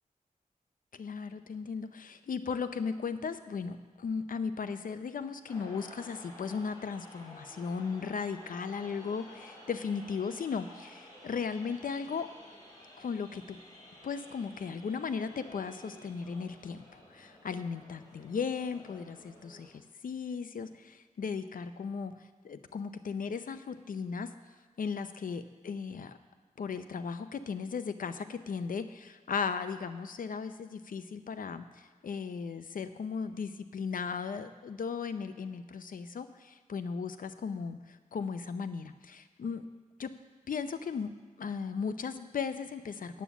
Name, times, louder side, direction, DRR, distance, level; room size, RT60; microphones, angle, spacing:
voice 1, 0.9-12.3 13.0-13.6 14.0-22.1 22.4-24.3 24.8-26.2 26.6-39.6 40.0-40.1 40.5-41.1 41.4-43.2, left 5 dB, 85° left, 10 dB, 0.6 m, -36 dB
sound 1, 5.5-19.7, left 1 dB, 25° left, 3.9 m, -53 dB
9.2 x 8.5 x 7.1 m, 1.5 s
wide cardioid pair, 120°, 14 cm